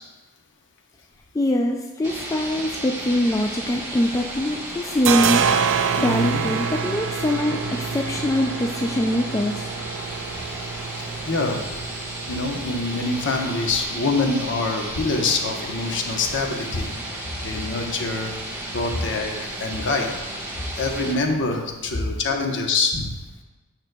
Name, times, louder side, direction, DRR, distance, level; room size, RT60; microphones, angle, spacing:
voice 1, 1.3-5.4 6.0-9.7, left 1 dB, 15° left, 2 dB, 0.3 m, -23 dB
sound 1, 2.0-21.1, right 1 dB, 10° right, 1.3 m, -34 dB
sound 2, 3.5-4.4 4.7-22.2, right 7 dB, 60° right, 0.4 m, -30 dB
voice 2, 6.0-6.4 11.3-11.6 12.3-16.9 17.4-18.3 18.7-19.3 19.6-20.1 20.8-23.1, left 3 dB, 55° left, 2 dB, 0.9 m, -25 dB
8.9 x 6.1 x 2.2 m, 1.1 s
head